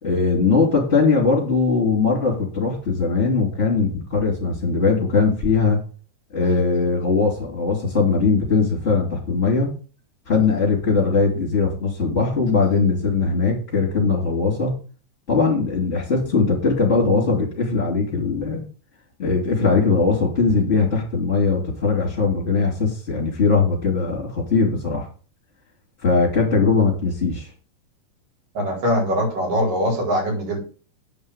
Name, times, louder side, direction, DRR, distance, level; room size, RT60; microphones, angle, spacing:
voice 1, 0.0-5.8 6.3-9.7 10.3-14.7 15.3-18.6 19.2-25.1 26.0-27.5, left 4 dB, 20° left, -5 dB, 3.2 m, -20 dB
voice 2, 28.6-30.6, equal, 85° right, -2 dB, 6.8 m, -22 dB
9.2 x 5.4 x 8.1 m, 0.38 s
omnidirectional pair, 3.7 m